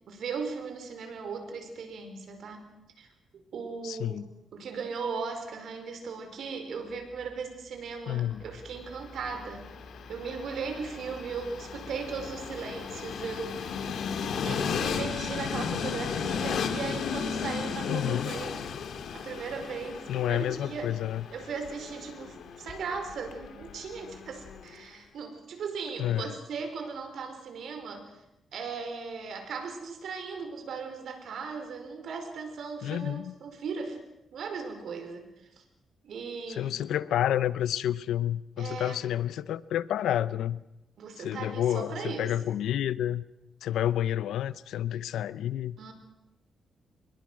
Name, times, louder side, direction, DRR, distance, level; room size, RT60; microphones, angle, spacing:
voice 1, 0.1-2.7 3.0-3.1 3.3-4.2 4.5-9.7 10.1-13.8 14.3-18.6 19.1-20.9 21.3-28.1 28.5-34.0 34.3-35.3 35.6-35.7 36.0-36.7 38.6-39.0 41.0-42.3 45.8-45.9, right 5 dB, 70° right, 6 dB, 4.8 m, -37 dB
voice 2, 3.8-4.3 8.1-8.4 17.9-18.3 20.1-21.2 26.0-26.3 32.8-33.3 36.5-40.6 41.2-43.2 43.6-45.8, left 11 dB, 90° left, 17 dB, 0.7 m, -29 dB
sound 1, 6.8-15.4, equal, 30° left, 6.3 m, -53 dB
Train, 8.8-24.8, left 6 dB, 75° left, 2.1 m, -35 dB
25.5 x 21.5 x 6.3 m, 0.92 s
cardioid pair, 90°, 0 cm